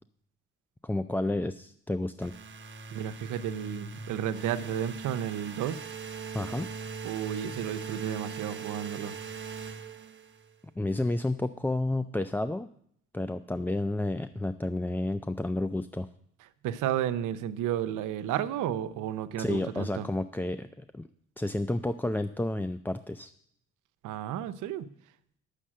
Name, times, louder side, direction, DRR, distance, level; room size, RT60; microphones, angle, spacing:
voice 1, 0.8-2.3 6.3-6.7 10.8-12.7 13.1-16.1 19.4-21.0 21.4-23.3, left 2 dB, 5° left, 11 dB, 0.3 m, -31 dB
sound 1, 2.2-10.5, right 5 dB, 40° right, 1.1 m, -40 dB
voice 2, 2.9-5.8 7.0-9.1 16.6-20.1 24.0-24.9, right 10 dB, 85° right, 12 dB, 0.7 m, -32 dB
9.9 x 6.5 x 7.4 m, 0.68 s
cardioid pair, 90°, 30 cm